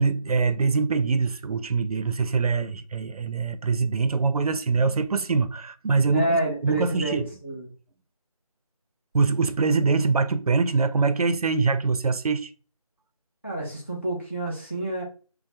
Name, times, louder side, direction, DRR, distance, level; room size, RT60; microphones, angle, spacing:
voice 1, 0.0-7.3 9.1-12.5, right 4 dB, 80° right, 0.4 m, -24 dB
voice 2, 6.1-7.7 13.4-15.0, right 1 dB, 20° left, 0.7 m, -28 dB
3.2 x 2.0 x 2.8 m
figure-of-eight pair, 175°, 19 cm